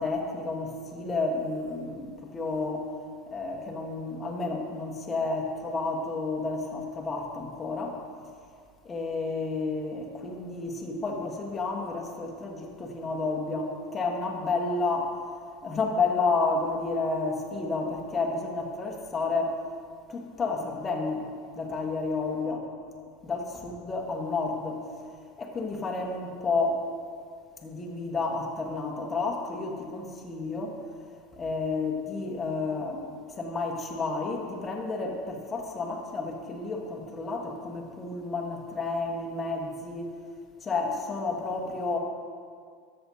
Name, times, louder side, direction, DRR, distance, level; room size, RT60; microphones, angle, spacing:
voice 1, 0.0-3.0 3.3-8.0 8.8-15.2 15.6-19.6 20.1-22.7 23.2-24.9 25.4-26.8 27.6-30.8 31.4-33.1 33.4-40.1 40.6-42.0, left 3 dB, 20° left, 0 dB, 1.3 m, -31 dB
13.0 x 7.7 x 2.8 m, 2.1 s
supercardioid pair, 135°, 0 cm